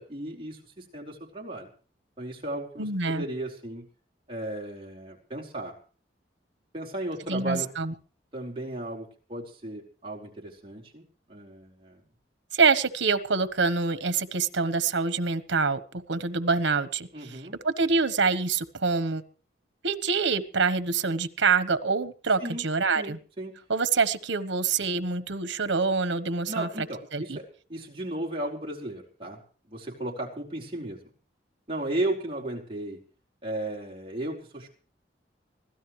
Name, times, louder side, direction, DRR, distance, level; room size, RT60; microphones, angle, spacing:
voice 1, 0.0-1.7 2.2-3.9 4.3-5.7 6.7-7.7 8.3-12.0 17.1-17.6 22.4-22.7 22.9-23.6 26.5-29.4 29.7-31.0 31.7-33.0 33.4-34.7, right 1 dB, 30° right, -2 dB, 4.5 m, -35 dB
voice 2, 2.8-3.2 7.3-7.9 12.5-15.8 16.1-17.4 17.6-19.2 19.8-23.2 23.7-26.9 27.1-27.4, right 4 dB, 90° right, 12 dB, 1.2 m, -26 dB
24.0 x 16.5 x 3.2 m, 0.39 s
head